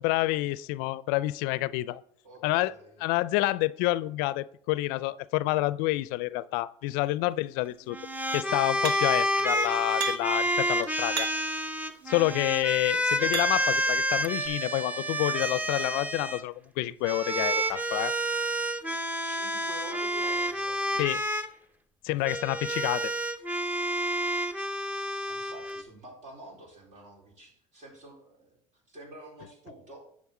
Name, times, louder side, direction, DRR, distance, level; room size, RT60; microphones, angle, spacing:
voice 1, 0.0-2.0 2.4-2.7 3.0-8.0 8.3-11.3 12.1-18.1 21.0-21.2 22.0-23.1, left 18 dB, 75° left, 18 dB, 0.4 m, -28 dB
voice 2, 2.2-3.0 19.2-20.8 25.3-28.6 28.9-30.0, right 1 dB, 55° right, -2 dB, 4.2 m, -48 dB
sound 1, 7.9-16.4 17.0-21.5 22.2-25.8, equal, 10° right, 0.8 m, -29 dB
sound 2, 8.8-9.3 10.0-10.4 11.1-11.6 12.4-13.8 14.4-14.5, right 8 dB, 75° right, 1.0 m, -36 dB
10.5 x 6.3 x 3.7 m, 0.64 s
supercardioid pair, 90°, 16 cm